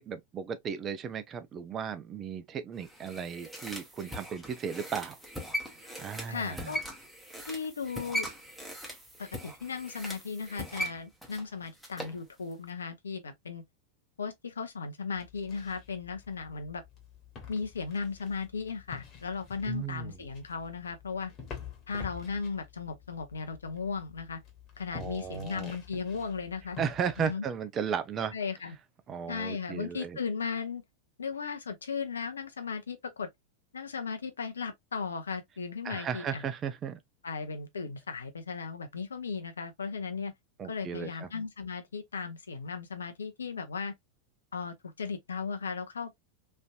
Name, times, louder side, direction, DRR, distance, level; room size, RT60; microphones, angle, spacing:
voice 1, 0.0-5.2 6.0-6.7 19.7-20.1 24.9-25.8 26.8-28.3 29.1-30.2 35.8-37.0 40.6-41.3, right 7 dB, 25° right, 0.5 m, -35 dB
sound 1, 2.8-12.2 12.5-12.6, equal, 5° right, 1.0 m, -40 dB
voice 2, 6.3-6.8 7.5-8.3 9.2-13.6 14.2-16.8 17.5-21.3 21.9-24.4 24.8-26.8 27.2-27.4 28.3-28.8 29.3-30.8 31.2-33.3 33.7-36.4 37.2-40.3 40.7-43.9 44.5-46.1, left 5 dB, 70° left, 0.7 m, -36 dB
sound 2, 15.1-27.3, left 7 dB, 30° left, 1.2 m, -48 dB
3.2 x 2.6 x 2.3 m
figure-of-eight pair, 90°, 0 cm